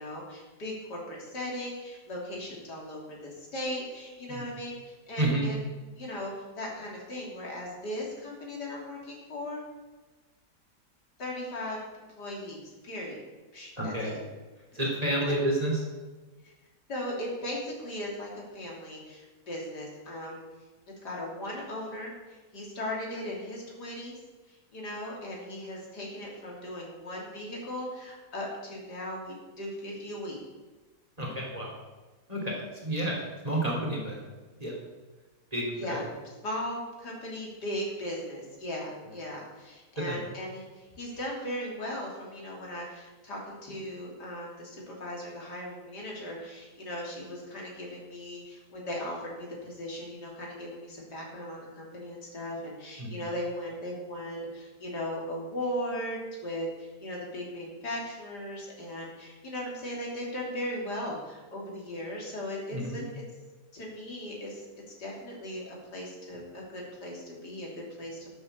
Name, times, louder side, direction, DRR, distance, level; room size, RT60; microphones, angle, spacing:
voice 1, 0.0-5.6 6.0-9.6 11.2-11.8 12.2-13.2 13.5-14.2 16.4-16.5 16.9-20.4 21.0-24.2 24.5-30.4 35.8-36.0 36.4-63.2 63.7-64.7 65.0-68.3, left 1 dB, 75° left, -3 dB, 3.7 m, -38 dB
voice 2, 5.2-5.5 13.8-14.1 14.7-15.8 31.2-31.7 32.3-33.2 33.4-34.2 34.6-34.7 35.5-36.0 40.0-40.2 53.0-53.2 62.7-63.0, right 1 dB, 20° right, -3 dB, 3.3 m, -30 dB
12.0 x 7.7 x 6.8 m, 1.2 s
omnidirectional pair, 1.8 m